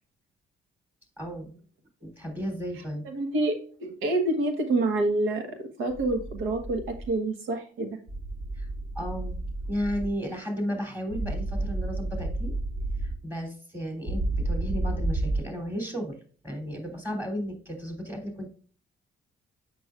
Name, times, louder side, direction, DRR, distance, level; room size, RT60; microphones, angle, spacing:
voice 1, 1.2-1.6 2.0-3.0 8.5-8.7 8.9-9.4 9.7-12.5 13.0-16.2 16.4-18.5, equal, 10° right, 3 dB, 3.0 m, -34 dB
voice 2, 3.0-7.9, right 2 dB, 90° right, 6 dB, 1.2 m, -27 dB
sound 1, 5.9-7.1 8.1-10.1 11.1-13.1 14.1-15.4, right 2 dB, 55° right, 3.8 m, -31 dB
7.9 x 5.9 x 2.4 m, 0.41 s
cardioid pair, 90°, 20 cm